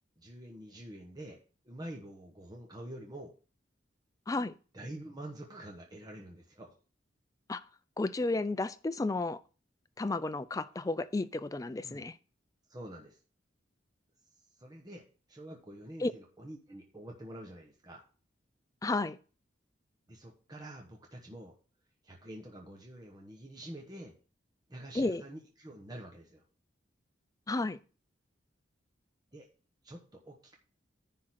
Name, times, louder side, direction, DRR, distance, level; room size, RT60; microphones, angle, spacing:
voice 1, 0.2-1.4 1.6-3.3 4.7-6.7 11.8-12.0 12.7-13.2 14.6-15.0 15.3-18.1 20.1-21.5 22.0-24.1 24.7-26.4 29.3-29.5 29.8-30.6, right 1 dB, 20° right, 1.1 m, -47 dB
voice 2, 4.3-4.6 7.5-7.6 8.0-9.4 10.0-12.2 16.0-16.1 18.8-19.2 24.9-25.2 27.5-27.8, left 2 dB, 20° left, 0.3 m, -32 dB
10.0 x 3.8 x 6.2 m
head